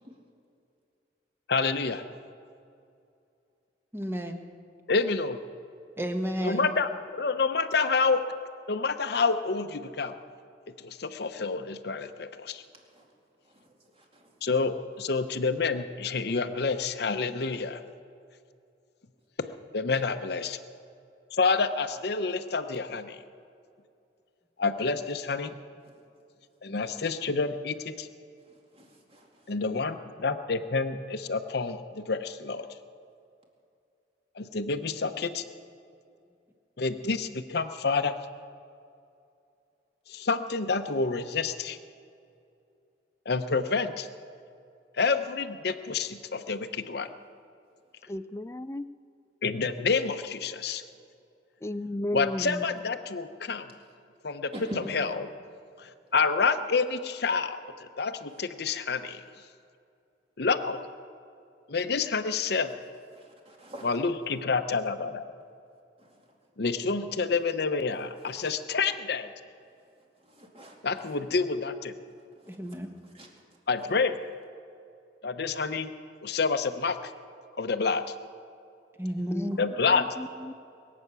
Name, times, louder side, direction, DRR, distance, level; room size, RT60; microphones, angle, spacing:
voice 1, 1.5-2.0 4.9-5.4 6.4-6.9 7.2-8.2 8.7-10.1 10.8-12.6 14.4-17.8 19.4-19.5 19.7-20.6 21.4-23.2 24.6-25.5 26.6-28.1 29.5-32.7 34.4-35.4 36.8-38.1 40.1-41.8 43.3-44.1 44.9-47.1 49.4-50.8 52.1-53.7 54.2-54.5 54.9-55.3 55.8-59.2 60.4-60.8 61.7-62.7 63.8-65.2 66.6-69.3 70.8-71.9 73.7-74.2 75.2-75.9 76.2-77.0 77.6-78.0 79.6-80.0, left 4 dB, 60° left, 8 dB, 0.7 m, -28 dB
voice 2, 3.9-4.4 6.0-6.7 52.4-52.7 72.4-73.0 79.0-79.6, equal, 15° right, 5 dB, 1.2 m, -32 dB
voice 3, 14.0-14.3 28.7-29.3 54.5-54.9 58.3-58.4 63.2-63.9 66.0-66.1 68.2-68.5 70.3-70.8 72.4-72.5 73.1-73.3, equal, 30° right, 0 dB, 2.4 m, -44 dB
voice 4, 48.1-48.8 51.6-52.4 79.3-80.5, left 1 dB, 15° left, 14 dB, 0.4 m, -34 dB
22.5 x 8.6 x 6.8 m, 2.5 s
head